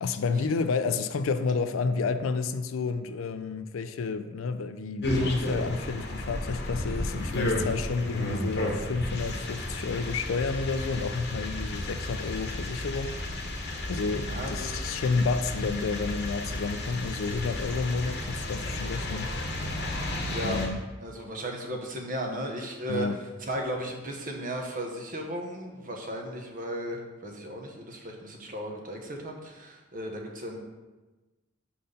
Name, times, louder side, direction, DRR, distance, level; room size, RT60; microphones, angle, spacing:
voice 1, 0.0-13.2 13.8-19.3 20.4-20.8 22.9-23.2, left 4 dB, 75° left, 0.4 m, -30 dB
sound 1, 5.0-20.7, left 1 dB, 55° left, 1.0 m, -32 dB
voice 2, 14.2-14.7 19.6-19.7 20.3-20.6 21.0-23.1 23.4-30.6, right 1 dB, 45° right, 1.0 m, -35 dB
5.4 x 4.4 x 5.1 m
head